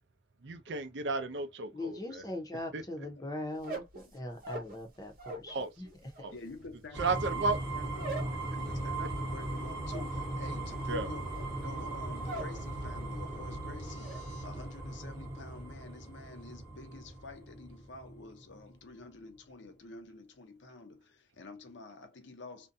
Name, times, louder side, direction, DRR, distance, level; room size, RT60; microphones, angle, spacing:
voice 1, 0.4-2.2 2.7-2.8 5.5-5.7 6.2-6.3 7.0-7.6 10.9-11.1, right 3 dB, 70° right, 0.5 m, -33 dB
voice 2, 1.7-6.3, left 1 dB, 20° left, 0.6 m, -41 dB
sound 1, 3.5-5.5 5.8-12.6 12.9-13.4 13.7-14.2, right 2 dB, 50° right, 0.9 m, -44 dB
voice 3, 6.3-8.2 8.5-22.7, left 3 dB, 75° left, 0.6 m, -49 dB
sound 2, 6.9-18.7, right 2 dB, 15° right, 0.9 m, -38 dB
2.5 x 2.2 x 2.6 m
head